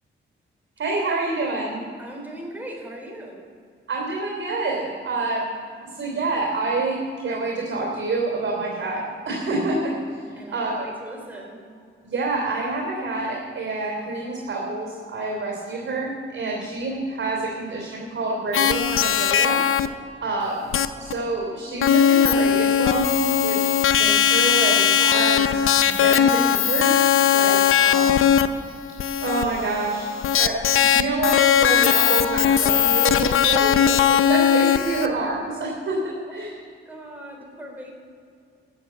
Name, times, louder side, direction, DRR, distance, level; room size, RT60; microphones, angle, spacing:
voice 1, 0.8-1.8 3.9-5.5 5.9-10.8 12.0-19.6 20.2-20.7 21.0-28.3 29.2-36.5, right 2 dB, 65° right, -2 dB, 3.1 m, -27 dB
voice 2, 2.0-3.5 10.3-11.7 15.7-16.0 33.6-33.8 36.3-36.4 36.9-37.9, right 1 dB, 10° right, -1 dB, 3.6 m, -38 dB
sound 1, 18.5-19.9 20.7-20.9 21.1-21.2 21.8-35.1, left 9 dB, 80° left, 0.6 m, -19 dB
14.0 x 7.5 x 8.7 m, 2.3 s
cardioid pair, 105°, 21 cm